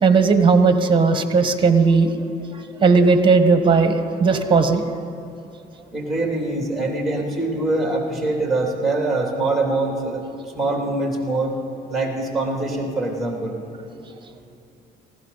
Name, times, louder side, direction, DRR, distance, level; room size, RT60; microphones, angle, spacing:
voice 1, 0.0-2.1 2.8-4.8, right 4 dB, 30° right, 8 dB, 1.3 m, -16 dB
voice 2, 5.9-10.2 10.6-11.5 11.9-13.5, right 2 dB, ahead, -1 dB, 2.9 m, -23 dB
19.5 x 16.0 x 4.1 m, 2.7 s
cardioid pair, 110°, 17 cm